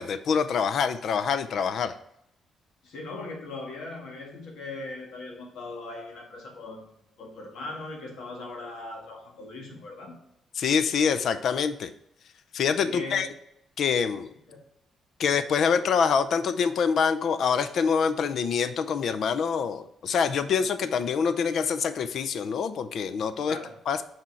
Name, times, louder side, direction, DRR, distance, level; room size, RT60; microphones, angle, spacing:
voice 1, 0.0-1.9 10.6-11.9 12.5-13.3 13.8-14.3 15.2-23.6 23.9-24.0, left 6 dB, 50° left, 11 dB, 0.4 m, -25 dB
voice 2, 2.8-6.9 7.2-10.1 12.8-13.3 14.5-14.6 23.5-23.7, left 2 dB, 70° left, 0 dB, 1.9 m, -39 dB
6.1 x 4.3 x 4.5 m, 0.77 s
cardioid pair, 165°, 0 cm